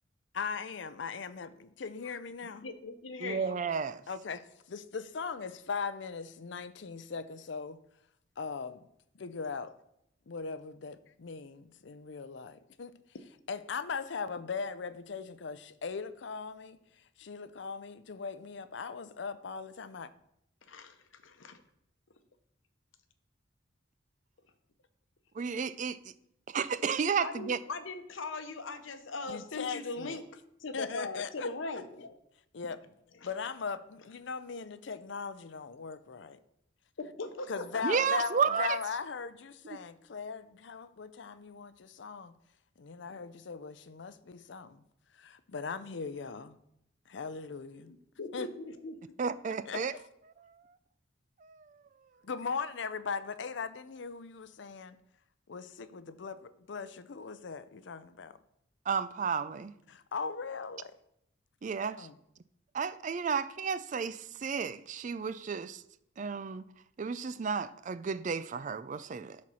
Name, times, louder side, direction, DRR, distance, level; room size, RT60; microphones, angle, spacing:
voice 1, 0.3-1.5 1.8-2.7 4.1-7.8 8.4-8.8 9.2-9.8 10.3-13.0 13.5-16.8 17.2-20.1 29.3-30.2 30.7-31.5 32.5-32.8 33.2-36.4 37.5-42.3 42.8-44.8 45.1-46.6 47.1-47.9 48.3-48.5 49.7-49.8 52.3-55.0 55.5-58.4 59.9-61.0 62.0-62.1, left 5 dB, 65° left, 0.5 m, -39 dB
voice 2, 2.4-3.6 20.7-21.6 27.2-30.2 30.6-32.1 37.0-38.5 47.8-49.0, left 3 dB, 85° left, 0.8 m, -40 dB
voice 3, 3.2-4.0 25.3-26.1 26.5-27.6 37.8-38.8 49.2-49.9 51.4-51.7 58.9-59.7 61.6-62.1 62.7-65.8 66.2-66.6 67.0-69.4, right 6 dB, 40° right, 0.4 m, -32 dB
10.5 x 4.3 x 6.2 m
head